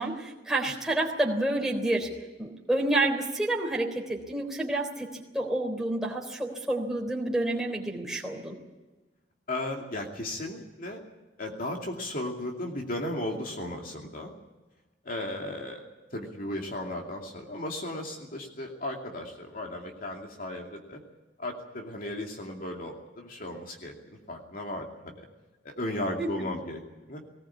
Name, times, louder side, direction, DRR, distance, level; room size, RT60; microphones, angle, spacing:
voice 1, 0.0-2.1 2.4-5.1 5.3-8.5 26.2-26.3, right 1 dB, ahead, -3 dB, 3.8 m, -29 dB
voice 2, 9.5-11.0 11.4-14.4 15.0-21.0 21.4-25.3 25.6-26.8 27.1-27.2, left 1 dB, 50° left, 1 dB, 2.6 m, -35 dB
19.5 x 18.5 x 8.6 m, 1.2 s
head